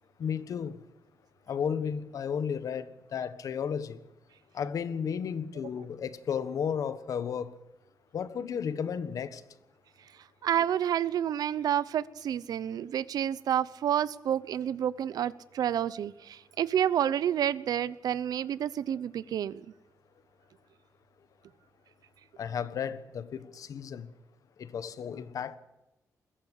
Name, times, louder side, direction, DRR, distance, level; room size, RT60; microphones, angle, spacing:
voice 1, 0.2-0.7 1.5-4.0 4.5-7.6 8.1-9.4 22.4-24.1 24.6-25.6, left 7 dB, 60° left, 1.3 m, -33 dB
voice 2, 10.4-19.7, right 10 dB, 85° right, 0.9 m, -29 dB
21.5 x 16.0 x 8.4 m
wide cardioid pair, 155°, 6 cm